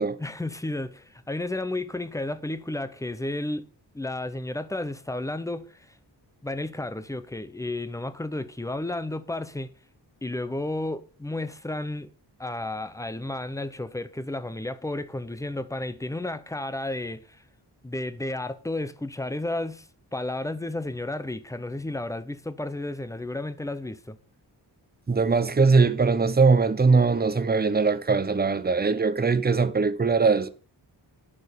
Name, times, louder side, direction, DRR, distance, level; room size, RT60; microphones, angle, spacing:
voice 1, 0.2-3.7 3.9-6.0 6.4-9.7 10.2-12.1 12.4-17.4 17.8-24.2, left 2 dB, 5° left, 0.7 m, -32 dB
voice 2, 25.1-30.5, right 4 dB, 20° right, 0.8 m, -21 dB
11.0 x 6.3 x 6.7 m
wide cardioid pair, 145°, 42 cm